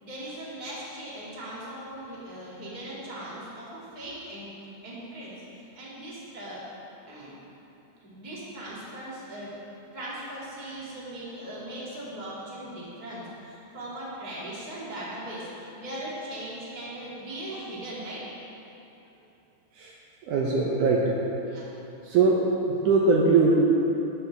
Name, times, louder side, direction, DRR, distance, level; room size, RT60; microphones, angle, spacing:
voice 1, 0.0-4.5 4.8-6.6 7.1-7.4 8.0-9.5 9.9-18.3 21.4-21.7, right 1 dB, 15° right, -7 dB, 1.7 m, -39 dB
voice 2, 20.2-21.1 22.0-23.6, right 3 dB, 75° right, -3 dB, 2.1 m, -21 dB
12.0 x 11.0 x 3.5 m, 3.0 s
omnidirectional pair, 4.1 m